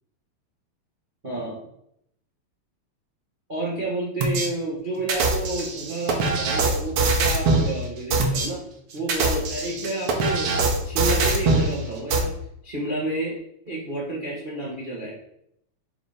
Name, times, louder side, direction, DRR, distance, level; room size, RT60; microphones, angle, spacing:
voice 1, 1.2-1.6 3.5-8.6 8.9-12.3 12.6-13.4 13.6-15.2, right 1 dB, 80° right, -6 dB, 0.4 m, -30 dB
sound 1, 4.2-4.5 5.1-7.7 8.1-8.5 9.0-11.7 12.1-12.2, right 3 dB, 65° right, 1.5 m, -22 dB
7.1 x 2.8 x 4.9 m, 0.75 s
omnidirectional pair, 3.3 m